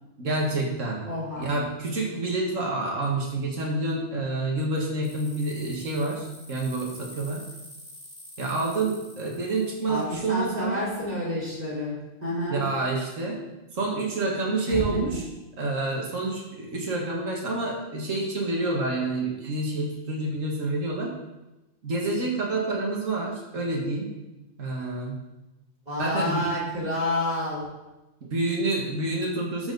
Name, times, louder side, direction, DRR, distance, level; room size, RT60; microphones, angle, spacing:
voice 1, 0.2-1.1 1.4-7.4 8.4-10.8 12.5-13.4 13.7-15.2 15.6-21.1 21.8-24.1 24.6-25.2 26.0-26.4 28.2-29.7, right 2 dB, 85° right, -2 dB, 2.1 m, -28 dB
voice 2, 1.0-1.5 9.9-12.6 14.7-15.2 25.9-27.7, left 1 dB, 30° right, -7 dB, 4.1 m, -29 dB
sound 1, 5.0-10.1, left 1 dB, 20° left, 2.0 m, -47 dB
12.0 x 7.2 x 4.0 m, 1.0 s
omnidirectional pair, 1.3 m